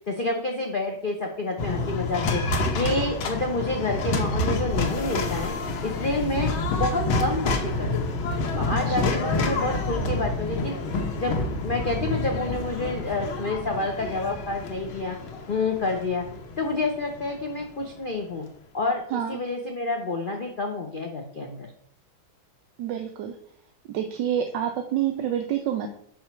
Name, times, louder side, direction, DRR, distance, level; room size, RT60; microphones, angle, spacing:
voice 1, 0.1-2.4 2.7-5.6 5.8-6.5 6.8-8.2 8.5-10.8 11.1-15.2 15.5-16.2 16.6-18.4 18.7-21.7, left 2 dB, 65° left, 2 dB, 0.5 m, -28 dB
sound 1, 1.6-17.8, left 2 dB, 85° left, 1.8 m, -28 dB
voice 2, 8.9-9.2 19.1-19.4 22.8-23.3 23.9-25.9, right 10 dB, 70° right, 4 dB, 1.3 m, -28 dB
5.8 x 5.6 x 4.4 m, 0.66 s
omnidirectional pair, 2.2 m